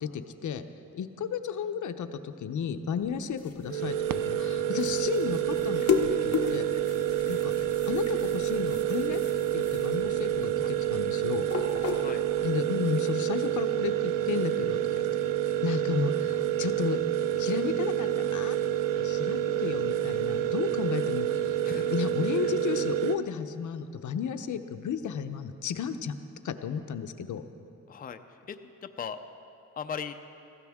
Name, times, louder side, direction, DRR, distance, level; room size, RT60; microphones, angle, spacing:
voice 1, 0.0-0.6 0.9-5.9 6.2-6.7 7.3-7.5 7.9-9.2 9.5-11.5 12.4-14.8 15.6-17.0 17.4-18.6 19.0-21.6 21.8-26.2 26.4-27.4, left 7 dB, 70° left, 9 dB, 0.7 m, -33 dB
sound 1, 3.0-12.6, left 7 dB, 50° left, 1.0 m, -35 dB
sound 2, 3.7-23.2, right 11 dB, 90° right, 0.5 m, -28 dB
voice 2, 21.6-21.9 27.9-28.2 28.5-29.2 29.8-30.1, left 7 dB, 30° left, 8 dB, 0.5 m, -38 dB
19.0 x 16.0 x 3.6 m, 2.8 s
wide cardioid pair, 125°, 31 cm